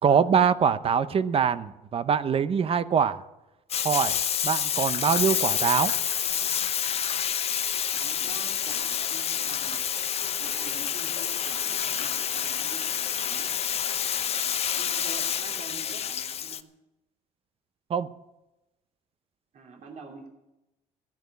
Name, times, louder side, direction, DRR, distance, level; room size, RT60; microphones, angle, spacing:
voice 1, 0.0-3.2 3.8-4.2 4.4-5.9 17.9-18.1, right 7 dB, 40° right, 13 dB, 0.8 m, -23 dB
Bathtub (filling or washing), 3.7-16.6, left 8 dB, 45° left, 0.8 m, -28 dB
voice 2, 7.9-9.8 10.4-13.6 14.7-16.7 19.5-20.3, right 4 dB, 55° right, 0 dB, 2.9 m, -46 dB
14.5 x 10.5 x 8.3 m, 0.96 s
cardioid pair, 95°, 15 cm